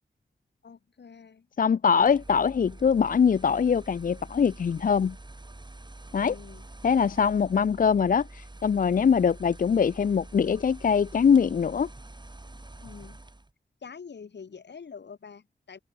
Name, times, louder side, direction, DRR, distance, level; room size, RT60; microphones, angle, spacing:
voice 1, 0.6-1.5 6.2-6.7 12.8-13.2 13.8-15.8, left 6 dB, 85° left, 2.3 m, -45 dB
voice 2, 1.6-5.1 6.1-6.3 6.8-11.9, left 6 dB, 55° left, 0.4 m, -23 dB
sound 1, 2.0-13.5, right 2 dB, 25° right, 3.1 m, -46 dB
cardioid pair, 55°, 17 cm